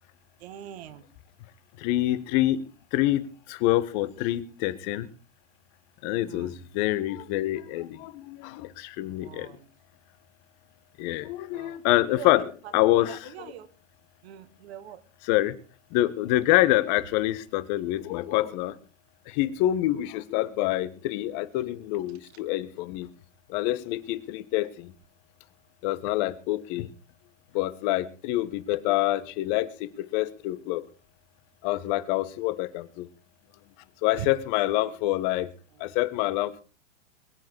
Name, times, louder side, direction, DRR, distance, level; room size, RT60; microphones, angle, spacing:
voice 1, 0.4-1.0 6.3-6.5 9.2-9.6 11.5-11.8 13.5-13.7 14.2-15.0, right 10 dB, 55° right, 13 dB, 2.0 m, -44 dB
voice 2, 1.8-5.1 6.0-9.5 11.0-13.5 15.2-15.6 15.9-18.8 19.3-23.1 23.5-24.9 25.8-26.9 27.5-30.8 31.6-33.1 34.0-35.5 35.8-36.6, left 15 dB, 35° left, 15 dB, 1.4 m, -26 dB
22.0 x 9.5 x 4.7 m, 0.35 s
hypercardioid pair, 135°, 38 cm